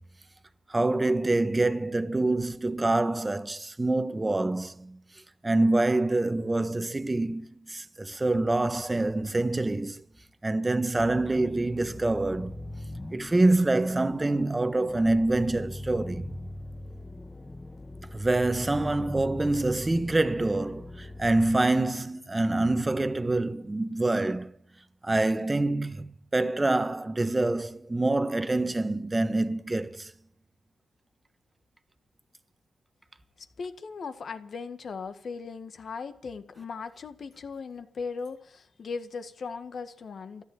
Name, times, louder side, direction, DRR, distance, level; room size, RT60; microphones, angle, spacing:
voice 1, 0.7-5.0 5.4-10.0 10.4-12.6 13.1-16.3 18.1-24.5 25.0-30.1, right 2 dB, 25° right, 1.2 m, -26 dB
sound 1, 11.0-21.6, left 1 dB, 15° left, 1.2 m, -41 dB
voice 2, 33.4-40.4, left 5 dB, 60° left, 1.7 m, -38 dB
14.0 x 12.0 x 8.9 m
cardioid pair, 65°, 0 cm